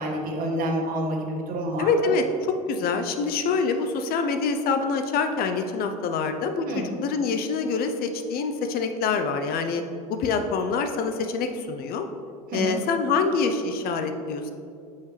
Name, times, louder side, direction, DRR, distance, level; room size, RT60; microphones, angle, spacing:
voice 1, 0.0-2.1 6.7-7.0 12.5-12.8, right 1 dB, 45° right, 0 dB, 1.6 m, -28 dB
voice 2, 1.8-9.8 10.2-12.1 12.5-14.5, left 4 dB, 50° left, 7 dB, 0.7 m, -25 dB
9.0 x 5.7 x 3.3 m, 2.4 s
hypercardioid pair, 90°, 20 cm